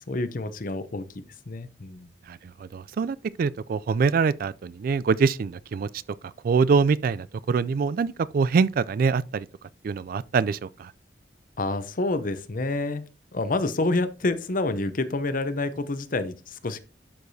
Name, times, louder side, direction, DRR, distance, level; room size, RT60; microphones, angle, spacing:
voice 1, 0.1-2.1 11.6-13.0 13.3-16.8, left 2 dB, 50° left, 0.7 m, -28 dB
voice 2, 2.3-5.9 6.4-9.5 9.8-10.9, right 5 dB, 55° right, 0.3 m, -24 dB
11.5 x 4.7 x 2.7 m
head